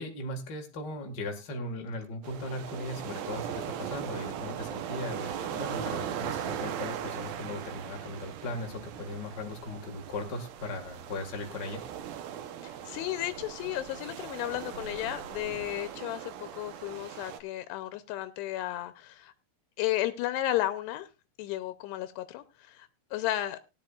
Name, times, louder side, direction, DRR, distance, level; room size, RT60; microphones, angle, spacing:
voice 1, 0.0-11.8, left 2 dB, 55° left, 2 dB, 1.1 m, -38 dB
sound 1, 2.2-17.4, right 9 dB, 70° right, 2.5 m, -39 dB
voice 2, 12.6-19.3 19.8-21.1 21.4-23.6, left 14 dB, 85° left, 11 dB, 2.8 m, -33 dB
18.5 x 10.0 x 2.4 m, 0.27 s
omnidirectional pair, 4.7 m